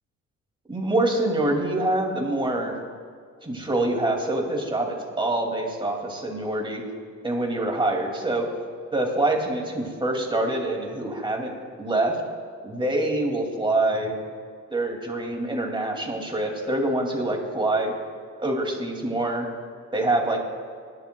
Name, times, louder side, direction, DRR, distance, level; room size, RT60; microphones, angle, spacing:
voice 1, 0.7-2.7 3.4-6.8 7.2-8.5 8.9-12.2 12.6-14.1 14.7-17.9 18.4-19.5 19.9-20.5, right 2 dB, 15° right, 1 dB, 2.3 m, -25 dB
21.5 x 11.0 x 2.3 m, 2.1 s
cardioid pair, 90°, 30 cm